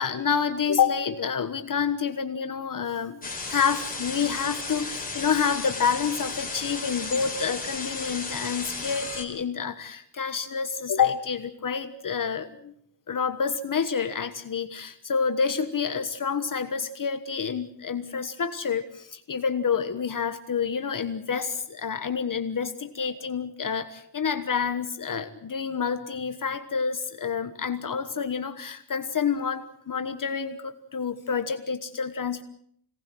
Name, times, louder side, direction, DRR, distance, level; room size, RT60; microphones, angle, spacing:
voice 1, 0.0-12.7 13.1-32.4, left 6 dB, 50° left, 8 dB, 1.3 m, -28 dB
sound 1, 3.2-9.2, left 3 dB, 20° left, 3.9 m, -34 dB
26.0 x 18.5 x 7.7 m, 0.67 s
wide cardioid pair, 160°, 42 cm